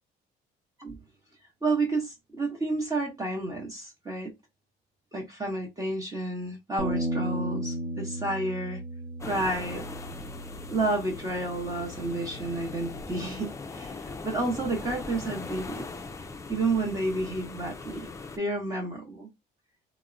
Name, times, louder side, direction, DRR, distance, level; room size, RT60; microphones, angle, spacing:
voice 1, 1.6-4.3 5.1-8.8 9.2-9.9 10.7-15.8 16.5-18.1 18.4-19.3, right 2 dB, 20° right, 0.8 m, -30 dB
Bass guitar, 6.8-13.0, right 1 dB, 50° right, 0.8 m, -35 dB
sound 1, 9.2-18.4, left 3 dB, 20° left, 0.4 m, -40 dB
3.4 x 2.0 x 2.5 m
cardioid pair, 110°, 17 cm